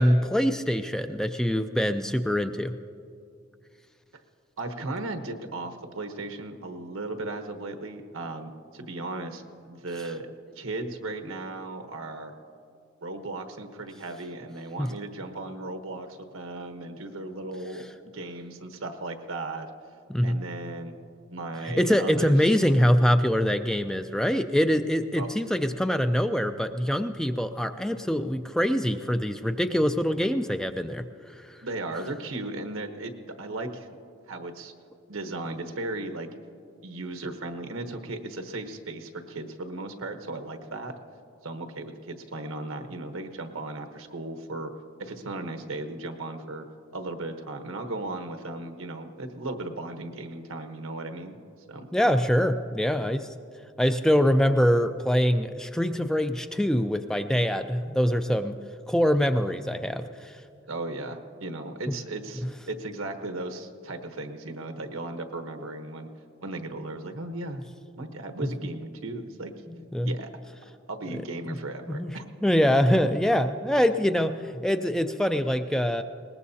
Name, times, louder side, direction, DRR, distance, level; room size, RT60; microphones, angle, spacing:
voice 1, 0.0-2.7 14.8-14.9 20.1-20.4 21.7-31.1 51.9-53.3 53.8-58.6 58.9-60.4 69.7-70.1 71.5-71.6 71.9-72.1 72.4-76.0, equal, 5° left, 8 dB, 0.3 m, -24 dB
voice 2, 4.6-10.3 10.6-12.3 13.0-19.7 20.2-20.9 21.3-22.5 25.2-25.3 31.6-33.9 34.3-34.7 35.1-36.3 36.8-41.0 41.4-44.7 45.0-46.7 46.9-51.4 51.7-51.9 60.7-66.1 66.4-67.7 68.0-69.5 70.0-70.3 70.9-72.2 72.9-73.0, right 2 dB, 85° right, 6 dB, 1.1 m, -36 dB
21.5 x 19.0 x 2.8 m, 2.4 s
head